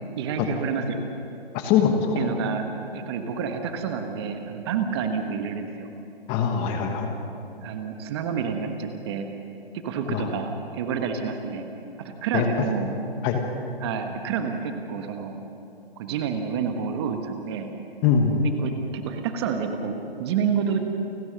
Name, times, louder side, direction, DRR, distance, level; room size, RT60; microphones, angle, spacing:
voice 1, 0.2-1.0 2.1-2.7 2.9-5.9 6.8-6.9 7.6-9.3 9.7-11.7 12.0-12.9 13.8-15.4 16.0-17.7 18.4-20.9, right 6 dB, 25° right, 5 dB, 1.4 m, -29 dB
voice 2, 1.5-2.3 6.3-7.1 10.1-10.3 12.3-12.5 13.2-13.4 18.0-18.4, left 7 dB, 15° left, 4 dB, 1.3 m, -22 dB
29.5 x 12.5 x 7.6 m, 2.7 s
hypercardioid pair, 150°, 30 cm